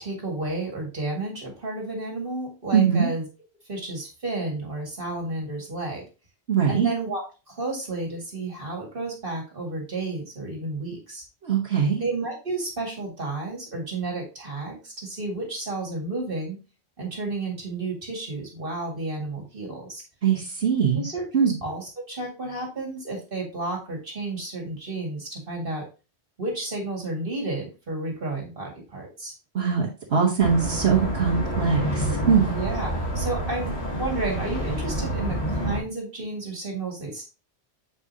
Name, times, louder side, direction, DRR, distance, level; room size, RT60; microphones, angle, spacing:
voice 1, 0.0-3.3 3.7-6.0 6.7-11.2 12.0-16.6 17.0-20.0 20.9-25.9 26.4-29.3 32.4-37.2, right 2 dB, 55° right, 0 dB, 2.2 m, -32 dB
voice 2, 2.7-3.1 6.5-6.9 11.4-12.1 20.2-21.0 21.3-21.5 29.5-32.5, right 6 dB, 75° right, -4 dB, 1.5 m, -22 dB
sound 1, 30.4-35.8, right 1 dB, 80° left, 3.0 m, -28 dB
7.1 x 4.9 x 2.7 m, 0.30 s
omnidirectional pair, 1.1 m